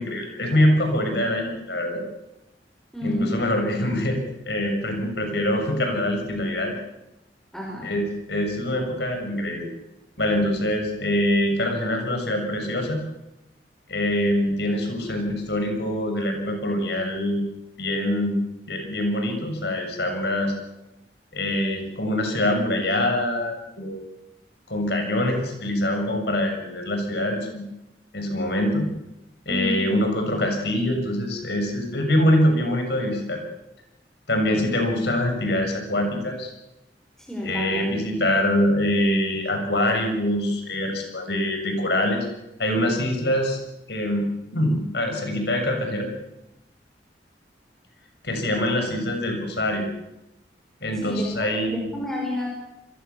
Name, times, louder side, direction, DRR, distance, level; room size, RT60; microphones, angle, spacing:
voice 1, 0.0-2.0 3.0-4.2 4.5-6.8 7.8-9.7 10.2-13.0 13.9-17.4 17.8-18.4 18.7-20.5 21.3-24.0 24.7-27.6 28.1-28.9 29.5-33.4 34.3-36.5 37.4-42.3 42.6-43.6 43.9-44.3 44.5-46.1 48.2-49.9 50.8-51.9, left 1 dB, 70° left, 4 dB, 7.0 m, -24 dB
voice 2, 2.9-3.3 7.5-7.8 29.5-29.8 37.3-37.8 51.0-51.3 51.7-52.5, left 1 dB, 5° left, -2 dB, 5.7 m, -29 dB
28.0 x 22.5 x 7.2 m, 0.92 s
head